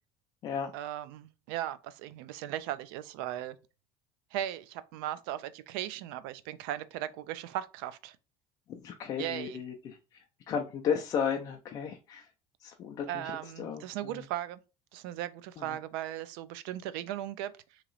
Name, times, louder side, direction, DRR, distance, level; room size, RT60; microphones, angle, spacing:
voice 1, 0.7-3.6 4.3-8.2 9.2-9.6 13.1-14.6 14.9-17.8, right 12 dB, 90° right, 0.4 m, -37 dB
voice 2, 8.7-12.3 12.6-13.3 13.6-14.2 15.6-15.7, left 7 dB, 30° left, 0.4 m, -34 dB
2.9 x 2.9 x 3.9 m
cardioid pair, 165°, 11 cm